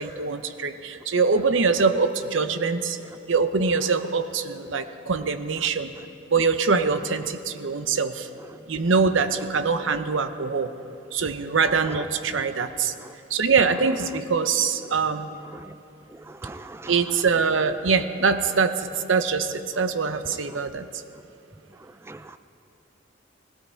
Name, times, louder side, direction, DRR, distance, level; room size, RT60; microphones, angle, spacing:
voice 1, 0.0-3.0 3.3-5.9 6.3-8.3 8.7-10.7 11.1-12.9 13.3-15.4 16.9-20.8, right 5 dB, 80° right, 10 dB, 0.7 m, -23 dB
voice 2, 16.3-16.9 22.1-22.4, right 2 dB, 15° right, 12 dB, 0.3 m, -40 dB
18.5 x 13.5 x 4.5 m, 2.8 s
head